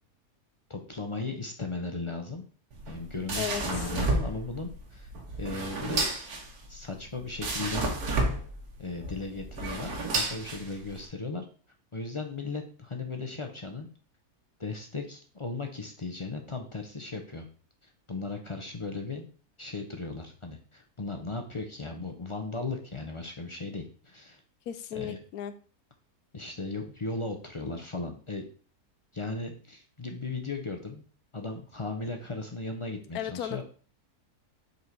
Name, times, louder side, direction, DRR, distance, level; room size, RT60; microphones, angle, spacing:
voice 1, 0.7-2.4 2.9-5.1 5.4-6.0 6.7-7.9 8.8-11.4 11.9-13.9 14.6-17.5 18.1-19.3 19.6-24.4 24.9-25.2 26.3-28.4 29.1-31.0 31.3-33.6, left 3 dB, 35° left, 4 dB, 0.5 m, -36 dB
sound 1, 2.7-11.1, right 2 dB, 75° right, 1.7 m, -31 dB
voice 2, 24.7-25.5 33.1-33.6, left 10 dB, 80° left, 11 dB, 1.1 m, -34 dB
5.4 x 4.1 x 4.5 m, 0.41 s
omnidirectional pair, 1.6 m